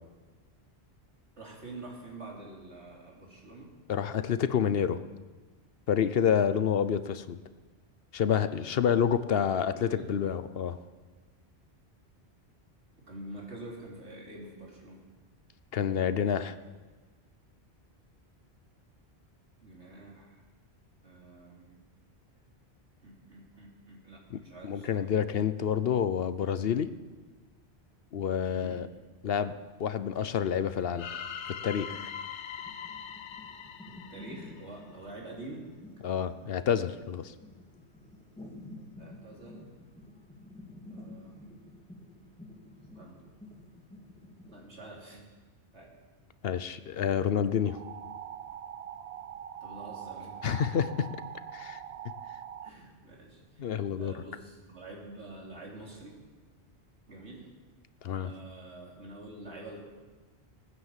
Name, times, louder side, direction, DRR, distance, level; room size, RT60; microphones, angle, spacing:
voice 1, 1.4-3.7 9.4-10.1 13.1-15.0 19.6-20.4 21.0-21.8 23.0-25.1 28.5-28.8 33.9-35.7 39.0-39.7 40.9-41.5 42.9-43.2 44.5-45.3 45.7-45.9 49.6-50.7 52.6-56.2 57.1-57.5 58.2-59.8, right 2 dB, 90° right, -2 dB, 3.5 m, -47 dB
voice 2, 3.9-5.0 5.9-7.4 8.1-10.8 15.7-16.6 24.3-26.9 28.1-28.9 29.2-29.5 29.8-31.1 31.6-32.1 36.0-37.3 46.4-47.8 50.4-51.1 51.5-51.8 53.6-54.2 58.0-58.3, left 8 dB, 65° left, 12 dB, 0.9 m, -28 dB
sound 1, 31.0-35.0, left 7 dB, 85° left, 1.1 m, -41 dB
sound 2, 32.5-44.6, left 1 dB, 5° left, 2.3 m, -50 dB
sound 3, 47.7-52.7, right 9 dB, 65° right, 0.8 m, -43 dB
18.0 x 9.7 x 7.4 m, 1.3 s
omnidirectional pair, 1.1 m